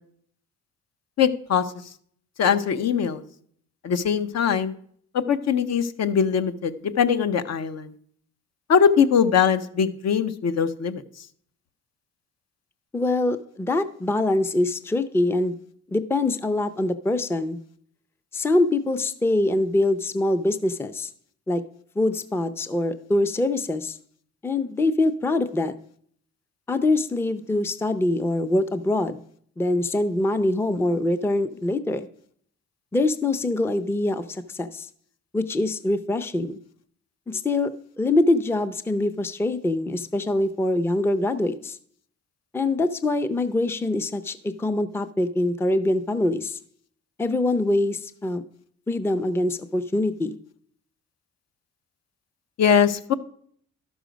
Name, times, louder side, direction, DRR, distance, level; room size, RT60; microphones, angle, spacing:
voice 1, 1.2-1.6 2.4-3.2 3.8-4.7 5.3-7.9 8.7-11.0 52.6-53.1, left 7 dB, 60° left, 10 dB, 0.8 m, -21 dB
voice 2, 12.9-15.5 15.9-17.6 18.3-21.1 21.5-21.6 22.0-24.0 24.4-25.7 26.7-29.2 29.6-32.1 32.9-34.9 35.3-36.6 37.3-37.7 38.0-41.8 42.5-46.6 47.2-48.4 48.9-50.4, left 2 dB, 10° left, 11 dB, 0.5 m, -24 dB
12.0 x 6.2 x 5.1 m, 0.63 s
cardioid pair, 90°, 30 cm